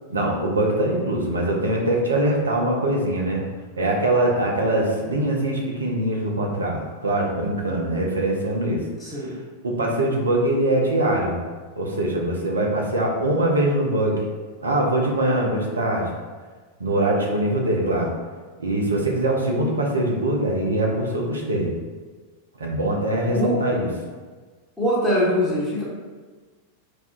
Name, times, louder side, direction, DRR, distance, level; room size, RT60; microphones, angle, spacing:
voice 1, 0.1-3.4 3.8-8.8 9.1-9.3 9.6-11.4 11.8-14.2 14.6-16.1 16.8-18.1 18.6-21.7 22.6-23.9, right 1 dB, 75° right, -1 dB, 0.6 m, -22 dB
voice 2, 9.0-9.3 23.3-23.6 24.8-25.8, equal, 10° left, -8 dB, 0.9 m, -22 dB
4.3 x 2.2 x 2.4 m, 1.4 s
figure-of-eight pair, 90°, 0 cm